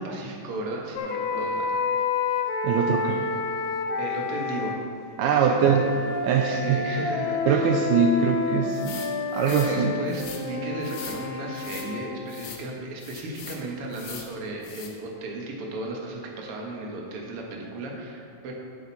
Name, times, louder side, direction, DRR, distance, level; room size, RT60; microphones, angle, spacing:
voice 1, 0.0-1.8 4.0-4.8 5.2-6.0 6.4-7.8 9.5-18.5, right 2 dB, 55° right, -1 dB, 1.8 m, -35 dB
sound 1, 1.0-4.8 5.6-12.1, left 4 dB, 80° left, 2.5 m, -29 dB
voice 2, 2.6-3.3 5.2-5.9 6.2-6.8 7.5-9.0 9.3-9.9, right 7 dB, 80° right, 3 dB, 2.0 m, -22 dB
sound 2, 8.7-9.7 10.1-10.4 10.8-11.2 11.5-11.9 12.3-12.6 13.0-13.6 13.9-14.3 14.6-14.9, left 6 dB, 65° left, 1.7 m, -41 dB
11.0 x 8.1 x 4.2 m, 2.5 s
omnidirectional pair, 3.9 m